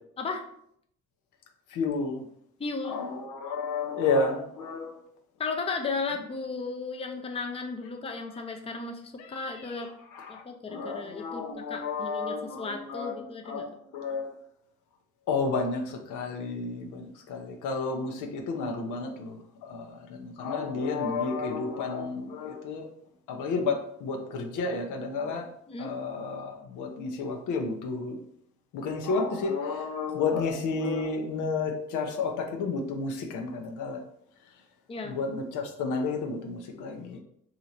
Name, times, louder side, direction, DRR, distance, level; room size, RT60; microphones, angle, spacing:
voice 1, 1.7-2.3 2.8-5.0 9.2-10.4 10.7-14.4 15.3-22.9 23.3-25.5 25.8-28.2 28.7-34.0 35.0-37.2, left 4 dB, 85° left, 2 dB, 0.7 m, -31 dB
voice 2, 2.6-3.0 5.4-9.9 10.3-13.7 25.7-25.9 34.9-35.2, left 4 dB, 20° left, 3 dB, 0.5 m, -35 dB
2.8 x 2.5 x 4.0 m, 0.70 s
cardioid pair, 90°, 30 cm